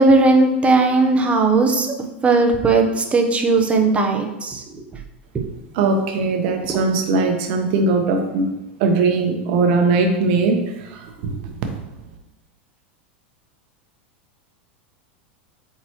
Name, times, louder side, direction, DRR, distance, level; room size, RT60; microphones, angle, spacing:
voice 1, 0.0-1.9 2.2-4.6 6.7-6.8, right 3 dB, 20° right, 3 dB, 1.0 m, -17 dB
voice 2, 5.7-8.5 8.8-11.5, right 3 dB, 55° right, 4 dB, 1.1 m, -20 dB
8.3 x 4.1 x 3.1 m, 0.97 s
hypercardioid pair, 95°, 6 cm